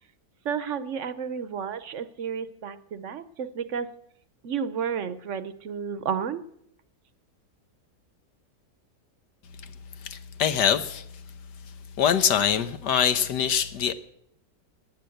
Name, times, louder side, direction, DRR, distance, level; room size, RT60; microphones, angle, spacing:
voice 1, 0.4-3.9 4.4-6.4, right 7 dB, 55° right, 14 dB, 1.0 m, -31 dB
voice 2, 10.0-11.0 12.0-13.9, left 8 dB, 85° left, 10 dB, 1.6 m, -24 dB
18.0 x 10.0 x 7.8 m, 0.72 s
omnidirectional pair, 1.8 m